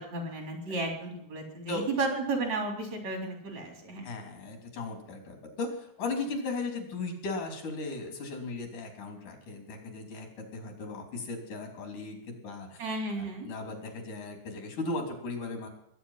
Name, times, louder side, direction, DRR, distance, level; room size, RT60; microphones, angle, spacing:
voice 1, 0.0-4.1 12.8-13.5, right 2 dB, 60° right, 2 dB, 4.9 m, -33 dB
voice 2, 4.0-12.8 13.1-15.7, left 3 dB, 80° left, 3 dB, 4.7 m, -37 dB
20.5 x 9.4 x 5.6 m, 0.80 s
omnidirectional pair, 3.5 m